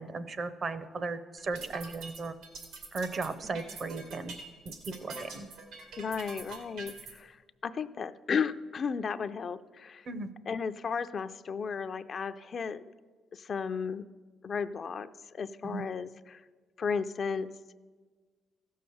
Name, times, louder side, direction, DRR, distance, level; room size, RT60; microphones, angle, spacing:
voice 1, 0.0-2.3 2.9-5.5 10.1-10.3 15.7-15.8, right 3 dB, 45° right, 13 dB, 0.8 m, -36 dB
sound 1, 1.4-7.1, right 3 dB, 90° right, 2.4 m, -44 dB
voice 2, 6.0-10.1 10.5-12.8 13.3-14.0 14.4-16.4 16.8-17.5, left 6 dB, 50° left, 11 dB, 0.5 m, -34 dB
15.0 x 6.5 x 7.0 m, 1.4 s
cardioid pair, 90°, 0 cm